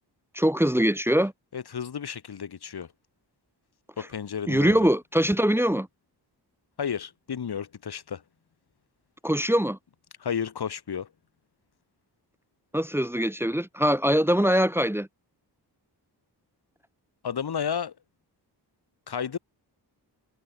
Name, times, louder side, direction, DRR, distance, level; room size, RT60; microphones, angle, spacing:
voice 1, 0.3-1.3 4.5-5.9 9.2-9.8 12.7-15.1, equal, 5° right, 1.7 m, -22 dB
voice 2, 1.5-2.9 4.0-4.9 6.8-8.2 10.2-11.1 17.2-17.9 19.1-19.4, left 7 dB, 65° left, 2.6 m, -32 dB
wide cardioid pair, 150°, 42 cm